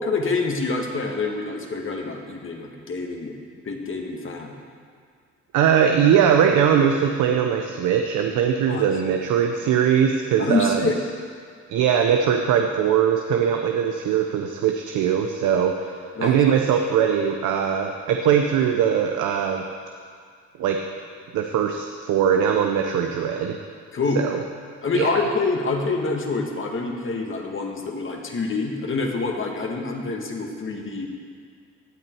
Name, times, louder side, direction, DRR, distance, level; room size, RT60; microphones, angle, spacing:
voice 1, 0.0-3.3 3.6-4.6 8.7-8.8 10.4-11.0 16.2-16.4 23.9-24.2 24.8-31.1, left 3 dB, 45° left, 1 dB, 1.8 m, -26 dB
voice 2, 5.5-10.8 11.7-15.9 16.2-19.6 20.6-20.8 21.3-23.6 24.2-24.3 24.9-25.1, right 8 dB, 90° right, 4 dB, 0.8 m, -21 dB
16.0 x 9.1 x 4.6 m, 2.1 s
cardioid pair, 90°, 30 cm